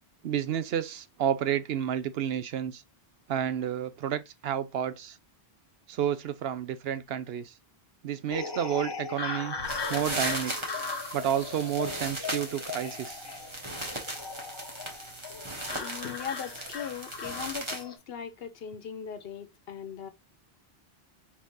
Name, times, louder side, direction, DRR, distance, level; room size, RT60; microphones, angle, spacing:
voice 1, 0.2-2.8 3.3-5.1 5.9-7.4 8.0-9.5 9.9-10.5 11.1-13.2, right 10 dB, 75° right, 0.8 m, -30 dB
sound 1, 8.3-18.0, left 4 dB, 30° left, 0.5 m, -38 dB
sound 2, 9.6-17.8, right 1 dB, 30° right, 1.3 m, -38 dB
voice 2, 15.7-20.1, left 7 dB, 75° left, 0.9 m, -39 dB
4.6 x 3.6 x 2.6 m
omnidirectional pair, 1.0 m